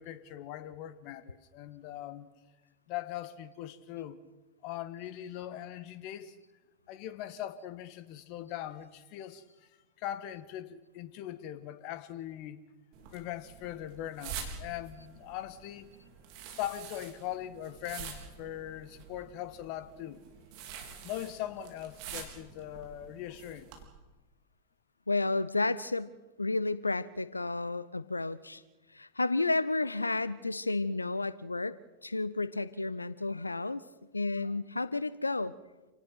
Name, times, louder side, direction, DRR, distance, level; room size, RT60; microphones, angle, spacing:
voice 1, 0.0-2.3 2.9-4.2 4.6-6.4 6.9-9.4 10.0-12.6 13.1-15.9 16.6-20.2 21.0-23.7, left 12 dB, 45° left, 1.6 m, -40 dB
sound 1, 12.9-23.8, right 6 dB, 45° right, 4.2 m, -47 dB
voice 2, 25.1-26.1 26.4-28.6 28.9-31.8 32.0-33.8 34.1-35.5, left 3 dB, 80° left, 0.6 m, -31 dB
28.0 x 18.0 x 6.0 m
figure-of-eight pair, 90°, 0 cm